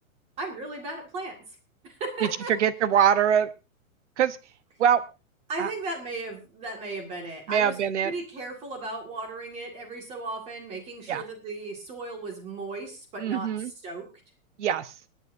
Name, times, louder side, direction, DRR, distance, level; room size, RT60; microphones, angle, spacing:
voice 1, 0.4-1.4 1.8-2.5 5.5-14.1, right 2 dB, 15° right, 3 dB, 2.0 m, -36 dB
voice 2, 2.2-3.5 4.2-4.4 4.8-5.0 5.6-5.7 7.5-8.1 11.1-11.2 13.2-13.7 14.6-14.9, right 9 dB, 55° right, 13 dB, 1.1 m, -23 dB
26.5 x 9.3 x 2.7 m, 0.31 s
hypercardioid pair, 175°, 42 cm